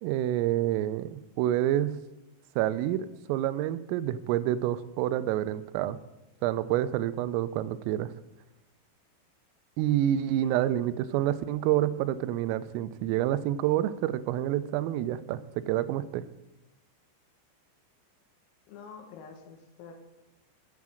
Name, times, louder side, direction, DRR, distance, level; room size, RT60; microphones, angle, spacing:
voice 1, 0.0-1.9 2.6-6.0 6.4-8.1 9.8-15.4 15.7-16.2, right 12 dB, 90° right, 14 dB, 3.3 m, -28 dB
voice 2, 10.4-10.8 18.7-19.9, left 6 dB, 85° left, 4 dB, 4.2 m, -48 dB
10.5 x 8.6 x 6.3 m, 0.96 s
omnidirectional pair, 5.9 m